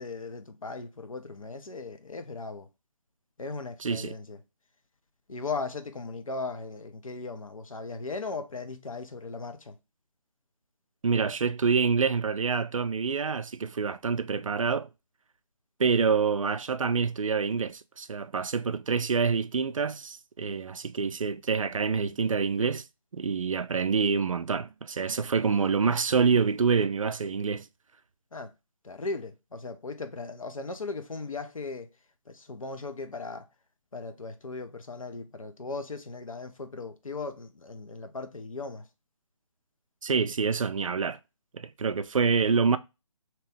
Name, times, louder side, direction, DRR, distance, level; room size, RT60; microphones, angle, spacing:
voice 1, 0.0-2.7 3.4-4.4 5.3-9.8 28.3-28.5 28.8-31.9 32.3-33.5 33.9-38.9, left 3 dB, 75° left, 0.7 m, -37 dB
voice 2, 3.8-4.1 11.0-14.9 15.8-22.9 23.1-27.7 40.0-41.2 41.5-42.8, right 5 dB, 70° right, 0.4 m, -26 dB
2.9 x 2.9 x 3.4 m
figure-of-eight pair, 150°, 17 cm